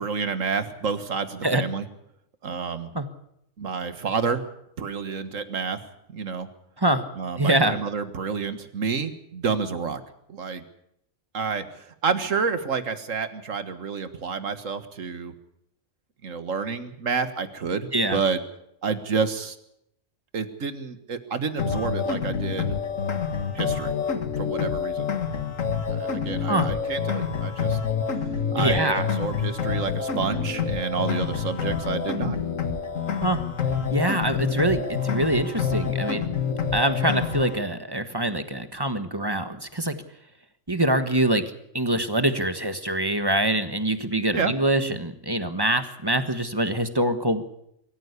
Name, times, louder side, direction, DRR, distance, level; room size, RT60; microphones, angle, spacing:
voice 1, 0.0-1.9 2.4-2.9 3.6-4.4 4.8-5.8 6.1-6.5 7.2-10.0 10.3-10.6 11.3-15.3 16.2-18.4 18.8-19.6 20.3-22.8 23.5-23.9 24.4-25.1 25.9-27.8 28.5-32.4 44.3-44.5, right 5 dB, 80° right, 10 dB, 1.9 m, -29 dB
voice 2, 7.4-7.8 17.9-18.2 26.4-26.7 28.6-29.1 33.2-33.4 33.9-36.2 36.7-39.9 40.7-41.4 41.7-47.7, right 1 dB, 20° right, 9 dB, 1.4 m, -24 dB
sound 1, 21.6-37.6, left 6 dB, 90° left, 2.0 m, -27 dB
23.5 x 14.5 x 8.3 m, 0.76 s
omnidirectional pair, 1.3 m